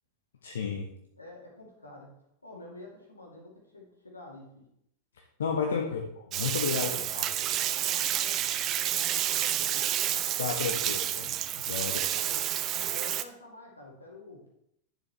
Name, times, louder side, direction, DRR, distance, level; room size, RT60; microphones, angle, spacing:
voice 1, 0.4-0.9 5.4-6.0 6.3-6.9 10.4-12.1, left 6 dB, 65° left, 2 dB, 0.9 m, -32 dB
voice 2, 1.2-2.1 2.4-4.7 5.7-5.9 6.7-9.8 11.8-12.4 12.7-14.5, left 2 dB, 80° left, -1 dB, 2.1 m, -48 dB
Bathtub (filling or washing), 6.3-13.2, right 12 dB, 35° right, 0.5 m, -29 dB
10.0 x 7.1 x 3.3 m, 0.76 s
figure-of-eight pair, 90°, 0 cm